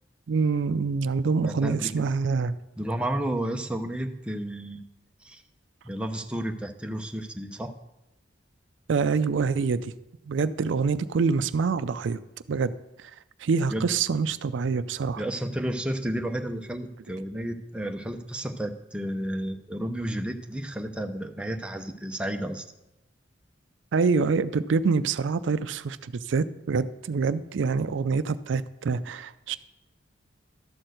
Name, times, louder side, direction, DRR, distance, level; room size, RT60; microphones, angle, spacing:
voice 1, 0.3-2.5 8.9-9.9 10.3-12.2 12.5-12.7 13.4-15.2 23.9-29.6, right 4 dB, 85° right, 14 dB, 0.4 m, -26 dB
voice 2, 1.4-1.9 2.8-4.8 5.2-5.4 5.8-7.7 13.7-13.9 15.2-22.6, right 1 dB, 5° right, 4 dB, 0.6 m, -32 dB
12.0 x 4.4 x 7.8 m, 0.93 s
head